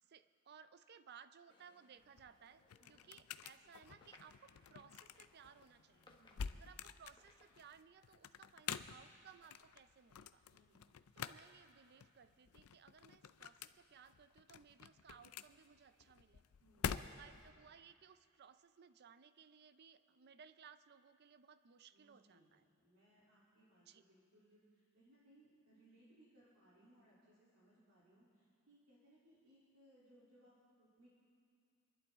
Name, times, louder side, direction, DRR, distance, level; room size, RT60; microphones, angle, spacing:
voice 1, 0.0-2.6 2.9-6.2 6.6-10.4 11.2-16.4 17.1-22.6 23.9-24.0, right 7 dB, 50° right, 12 dB, 0.5 m, -62 dB
sound 1, 1.5-7.8, left 2 dB, 20° left, 1.2 m, -70 dB
sound 2, 2.0-17.5, left 7 dB, 80° left, 0.5 m, -49 dB
voice 2, 6.1-6.9 10.5-10.8 16.6-17.2 21.9-31.1, right 1 dB, 80° right, -8 dB, 3.1 m, -69 dB
27.5 x 11.5 x 3.6 m, 2.3 s
head